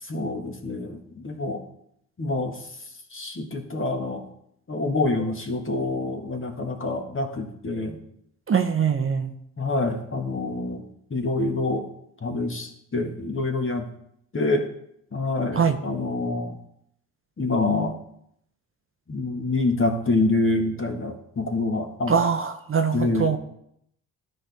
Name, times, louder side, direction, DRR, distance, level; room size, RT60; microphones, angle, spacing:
voice 1, 0.0-1.6 2.2-2.7 3.1-4.2 4.7-8.0 9.6-11.9 12.2-13.9 14.3-14.7 15.1-16.6 17.4-18.0 19.1-22.2 22.9-23.4, left 2 dB, 30° left, 4 dB, 1.6 m, -26 dB
voice 2, 8.5-9.3 15.5-15.8 22.1-23.4, right 6 dB, 30° right, 6 dB, 0.7 m, -22 dB
12.5 x 4.3 x 3.5 m, 0.73 s
hypercardioid pair, 50°, 40 cm